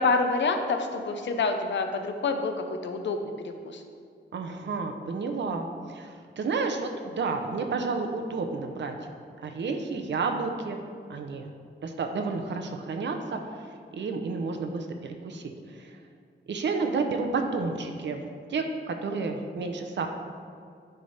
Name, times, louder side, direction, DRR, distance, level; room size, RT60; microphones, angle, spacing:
voice 1, 0.0-3.8, left 3 dB, 75° left, 6 dB, 0.6 m, -27 dB
voice 2, 4.3-8.9 9.4-10.8 11.1-11.5 11.8-13.4 13.9-16.0 16.5-18.2 18.5-20.1, right 4 dB, 70° right, 5 dB, 0.6 m, -31 dB
9.9 x 3.4 x 4.0 m, 2.3 s
wide cardioid pair, 160°, 19 cm